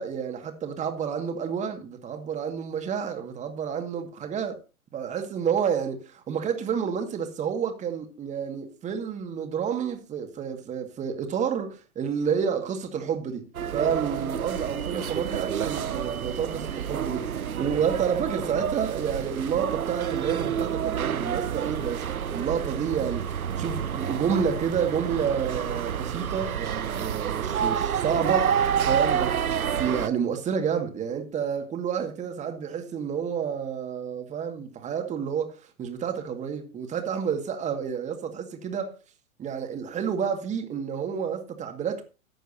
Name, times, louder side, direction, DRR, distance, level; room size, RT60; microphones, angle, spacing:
voice 1, 0.0-4.6 4.9-13.5 13.7-22.0 22.3-29.4 29.8-38.9 39.4-42.0, right 7 dB, 15° right, 2.0 m, -29 dB
sound 1, 13.5-30.1, right 8 dB, 80° right, 0.7 m, -29 dB
14.5 x 10.0 x 2.8 m
figure-of-eight pair, 115°, 42 cm